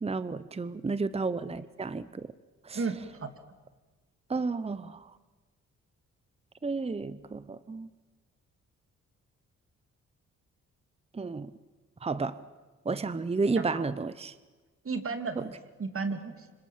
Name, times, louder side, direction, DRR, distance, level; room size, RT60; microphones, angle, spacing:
voice 1, 0.0-2.3 2.6-2.8 4.3-5.1 6.6-7.9 11.1-11.5 12.0-12.4 12.8-14.3, right 4 dB, 20° right, 15 dB, 0.9 m, -32 dB
voice 2, 2.7-3.3 13.5-13.9 14.8-15.5 15.8-16.5, right 4 dB, 45° right, 8 dB, 2.9 m, -34 dB
26.5 x 25.0 x 7.6 m, 1.3 s
cardioid pair, 70°, 30 cm